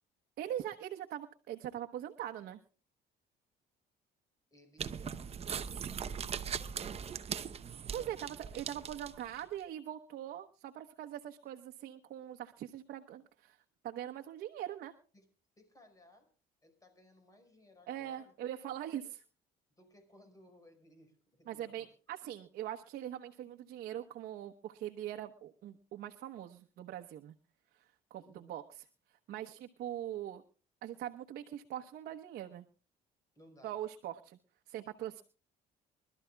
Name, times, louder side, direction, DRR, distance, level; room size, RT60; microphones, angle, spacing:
voice 1, 0.4-2.6 7.9-13.6 13.8-14.9 17.9-19.2 21.5-27.3 27.7-28.6 29.3-30.4 30.8-32.6 33.6-34.4 34.7-35.2, right 11 dB, 70° right, 3 dB, 1.1 m, -42 dB
voice 2, 4.5-7.1 15.1-15.3 15.6-16.3 16.6-18.3 18.6-18.8 19.0-19.1 19.8-21.9 28.2-28.6 33.3-33.8, left 1 dB, 20° left, 7 dB, 5.3 m, -61 dB
sound 1, 4.8-9.4, right 7 dB, 35° right, 0.8 m, -40 dB
25.5 x 13.0 x 2.3 m, 0.36 s
cardioid pair, 110°, 17 cm